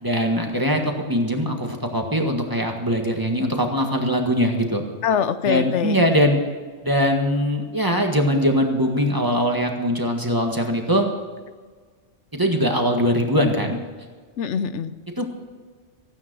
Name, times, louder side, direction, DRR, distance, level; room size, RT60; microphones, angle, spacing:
voice 1, 0.0-4.8 5.5-6.4 6.8-11.1 12.3-13.8 15.2-15.3, equal, 20° right, 2 dB, 1.7 m, -21 dB
voice 2, 5.0-6.0 14.4-14.9, left 7 dB, 80° left, 12 dB, 1.0 m, -23 dB
15.5 x 9.4 x 6.2 m, 1.5 s
omnidirectional pair, 1.2 m